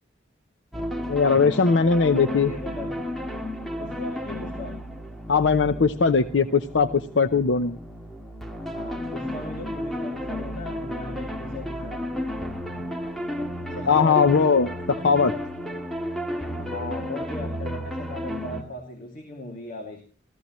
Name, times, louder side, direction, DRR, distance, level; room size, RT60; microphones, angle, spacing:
sound 1, 0.7-18.6, equal, ahead, 1.8 m, -33 dB
voice 1, 1.1-2.5 5.3-6.9 7.2-7.8 13.9-14.7 15.0-15.3, left 5 dB, 85° left, 10 dB, 0.7 m, -19 dB
voice 2, 2.0-3.0 3.8-4.8 8.6-12.0 13.7-14.2 16.6-20.0, left 2 dB, 50° left, 2 dB, 2.7 m, -37 dB
29.0 x 14.5 x 3.1 m, 0.36 s
head